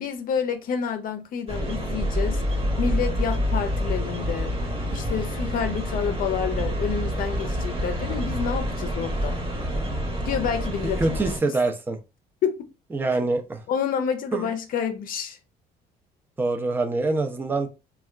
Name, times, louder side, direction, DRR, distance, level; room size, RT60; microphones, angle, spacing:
voice 1, 0.0-4.5 4.9-9.4 10.2-11.2 12.4-12.7 13.7-15.4, left 7 dB, 55° left, 0.5 m, -29 dB
sound 1, 1.5-11.4, equal, 35° right, 1.1 m, -27 dB
voice 2, 11.0-12.0 12.9-13.6 14.3-14.5 16.4-17.7, right 3 dB, 10° right, 0.4 m, -25 dB
3.3 x 2.3 x 2.3 m
cardioid pair, 110°, 17 cm